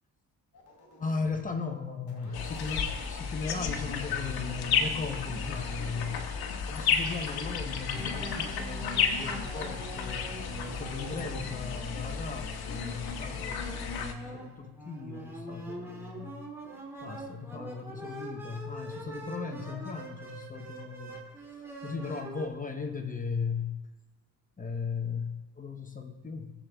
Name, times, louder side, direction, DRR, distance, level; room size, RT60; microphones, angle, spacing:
sound 1, 0.5-1.4 2.1-4.5 5.1-6.1, left 2 dB, 50° left, 3.8 m, -49 dB
voice 1, 1.0-6.4 6.7-16.4 17.0-21.2 21.5-23.8 24.6-25.3 25.6-26.5, left 5 dB, 20° left, 5 dB, 0.9 m, -37 dB
sound 2, 2.3-14.1, left 6 dB, 75° left, 1.3 m, -33 dB
sound 3, 7.9-22.5, right 1 dB, 5° right, 2.3 m, -44 dB
19.0 x 7.6 x 3.5 m, 1.2 s
cardioid pair, 135°, 38 cm